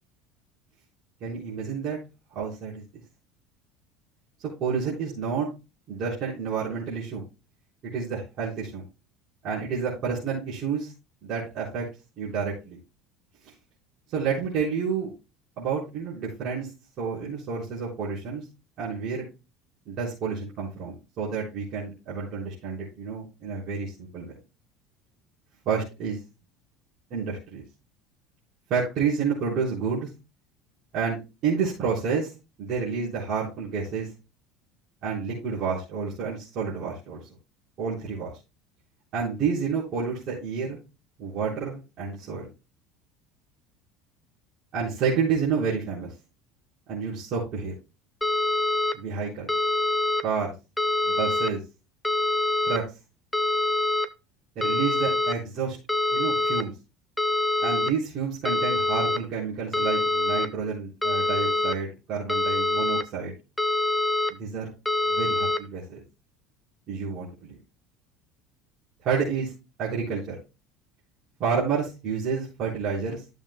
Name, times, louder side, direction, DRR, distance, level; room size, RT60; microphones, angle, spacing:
voice 1, 1.2-2.0 2.3-2.8 4.4-5.5 5.9-7.2 7.9-8.8 9.4-10.9 11.2-11.9 12.2-12.8 14.1-15.1 15.6-16.7 17.0-18.5 18.8-19.3 19.9-24.3 25.7-26.2 27.1-27.6 28.7-30.1 30.9-31.2 31.4-32.3 32.6-34.1 35.0-37.3 37.8-38.3 39.1-40.8 41.2-42.5 44.7-46.1 46.9-47.7 48.9-49.5 50.2-50.5 51.0-51.6 52.7-52.8 54.6-55.8 56.1-56.7 57.6-63.3 64.4-64.7 65.1-66.0 66.9-67.6 69.0-69.5 69.8-70.3 71.4-73.2, right 6 dB, 45° right, -8 dB, 4.2 m, -29 dB
sound 1, 48.2-48.9 49.5-50.2 50.8-51.5 52.0-52.8 53.3-54.1 54.6-55.3 55.9-56.6 57.2-57.9 58.4-59.2 59.7-60.5 61.0-61.7 62.3-63.0 63.6-64.3 64.9-65.6, left 2 dB, 5° left, 0.6 m, -25 dB
13.5 x 7.1 x 2.2 m, 0.28 s
cardioid pair, 145°, 0 cm